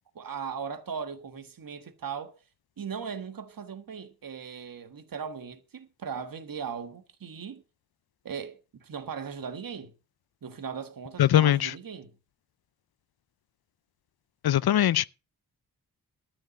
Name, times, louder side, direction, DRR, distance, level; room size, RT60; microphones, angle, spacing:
voice 1, 0.1-2.3 2.8-7.6 8.2-9.9 10.4-12.2, right 6 dB, 60° right, 1.6 m, -38 dB
voice 2, 11.2-11.7 14.4-15.1, left 12 dB, 75° left, 0.5 m, -21 dB
13.0 x 5.5 x 7.7 m
wide cardioid pair, 175°, 38 cm